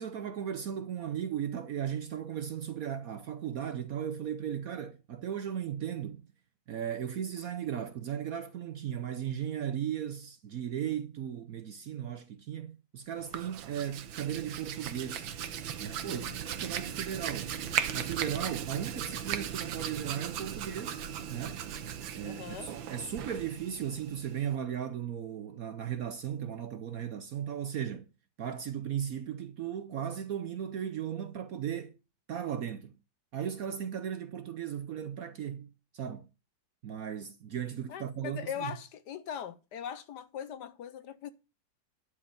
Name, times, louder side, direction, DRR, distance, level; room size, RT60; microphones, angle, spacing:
voice 1, 0.0-6.3 6.7-15.3 15.8-17.5 17.9-21.0 21.3-21.6 22.1-28.1 28.4-31.9 32.3-33.0 33.3-36.3 36.8-38.7, right 9 dB, 65° right, 0.9 m, -36 dB
Hands, 13.1-24.5, right 9 dB, 90° right, 1.7 m, -37 dB
voice 2, 22.2-22.7 37.9-41.3, left 8 dB, 65° left, 1.3 m, -40 dB
11.0 x 4.8 x 6.7 m
omnidirectional pair, 2.1 m